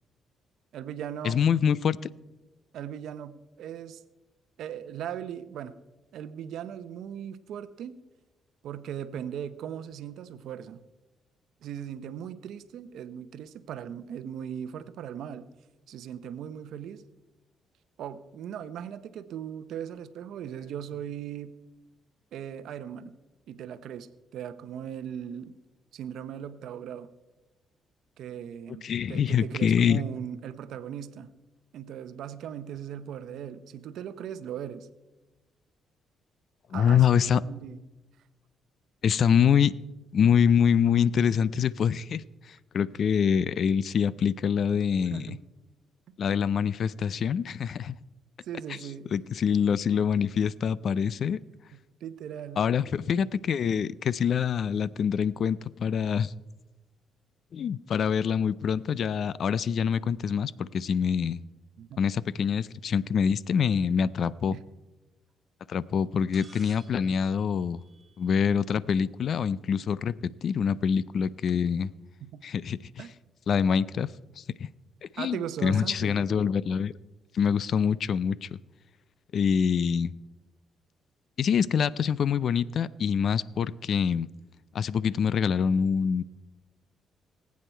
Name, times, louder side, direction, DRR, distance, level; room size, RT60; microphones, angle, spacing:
voice 1, 0.7-1.4 2.7-4.0 4.6-5.8 6.1-8.0 8.6-10.8 11.6-15.5 15.9-17.0 18.0-21.5 22.3-23.2 23.5-25.5 25.9-27.1 28.2-31.3 31.7-34.9 36.7-37.8 45.1-45.4 48.4-49.1 51.7-52.6 61.8-62.0 64.5-64.6 72.2-72.4 73.0-73.1 75.2-76.2, right 9 dB, 75° right, 13 dB, 0.7 m, -38 dB
voice 2, 1.2-2.0 28.8-30.0 36.7-37.4 39.0-39.7 40.1-45.4 46.2-47.9 48.7-48.8 49.1-51.4 52.6-56.3 57.5-61.4 62.0-64.6 65.7-67.8 68.2-71.9 72.4-73.0 73.5-74.1 74.4-74.7 75.1-76.9 77.3-78.6 79.3-80.1 81.4-84.3 84.7-86.2, left 7 dB, 60° left, 20 dB, 0.4 m, -25 dB
sound 1, 66.3-68.6 70.2-70.3 71.5-71.6, right 4 dB, 30° right, 1.5 m, -56 dB
19.5 x 8.4 x 4.5 m, 1.1 s
cardioid pair, 90°, 0 cm